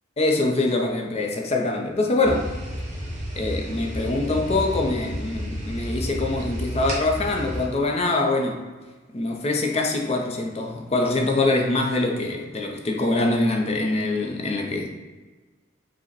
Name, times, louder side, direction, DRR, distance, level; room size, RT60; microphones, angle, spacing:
voice 1, 0.2-2.5 3.4-8.6 9.1-14.9, left 2 dB, 30° left, 2 dB, 0.5 m, -24 dB
sound 1, 2.2-7.7, equal, 35° right, 0.9 m, -31 dB
5.0 x 2.1 x 3.9 m, 1.3 s
head